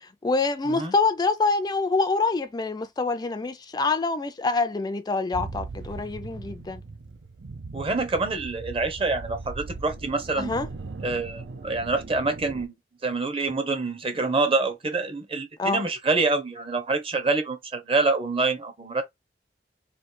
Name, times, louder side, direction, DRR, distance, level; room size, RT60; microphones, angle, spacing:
voice 1, 0.0-6.8 10.4-10.7 15.6-15.8, left 3 dB, 25° left, 0.3 m, -26 dB
sound 1, 5.3-12.7, right 3 dB, 80° right, 0.6 m, -39 dB
voice 2, 7.7-10.5 11.0-12.7 13.0-19.0, right 3 dB, 30° right, 0.9 m, -26 dB
3.1 x 2.7 x 4.5 m
head